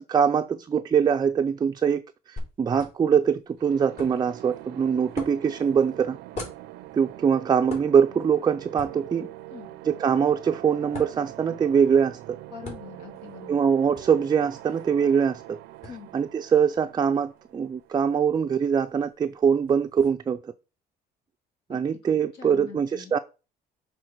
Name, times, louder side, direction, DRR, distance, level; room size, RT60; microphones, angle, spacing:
voice 1, 0.0-2.0 2.3-6.2 6.9-9.3 9.8-12.4 13.5-15.6 16.1-20.5 21.7-23.2, right 7 dB, 25° right, 0.4 m, -23 dB
sound 1, 2.4-20.1, left 2 dB, 45° left, 3.4 m, -46 dB
sound 2, 3.6-18.3, right 16 dB, 90° right, 0.5 m, -44 dB
voice 2, 9.5-9.8 12.5-13.7 15.9-16.1 21.7-23.1, left 6 dB, 80° left, 2.2 m, -44 dB
6.3 x 3.4 x 5.9 m
cardioid pair, 110°, 17 cm